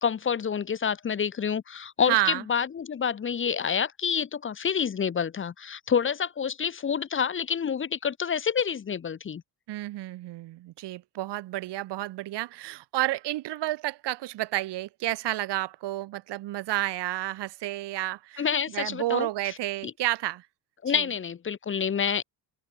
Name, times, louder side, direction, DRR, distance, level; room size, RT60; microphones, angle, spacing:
voice 1, 0.0-9.4 18.4-19.5 19.8-19.9 20.8-22.2, left 7 dB, 30° left, 1.3 m, -28 dB
voice 2, 2.1-2.4 9.7-18.5 18.7-20.4 20.9-21.0, right 16 dB, 75° right, 2.0 m, -30 dB
open air
cardioid pair, 165°, 42 cm